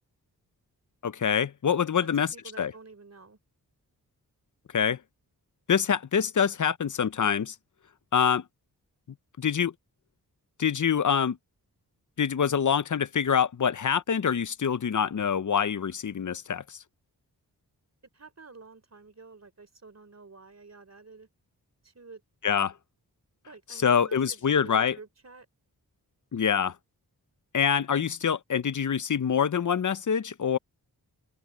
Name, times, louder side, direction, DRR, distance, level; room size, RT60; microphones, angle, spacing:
voice 1, 1.0-2.3 2.6-2.7 4.7-5.0 5.7-7.5 8.1-8.4 9.4-9.7 10.6-11.4 12.2-16.8 22.4-22.7 23.7-25.0 26.3-26.7 27.5-30.6, left 7 dB, 50° left, 0.7 m, -25 dB
voice 2, 2.0-3.4 18.1-21.3 21.8-22.2 23.5-25.5, right 4 dB, 40° right, 3.7 m, -49 dB
cardioid pair, 50°, 39 cm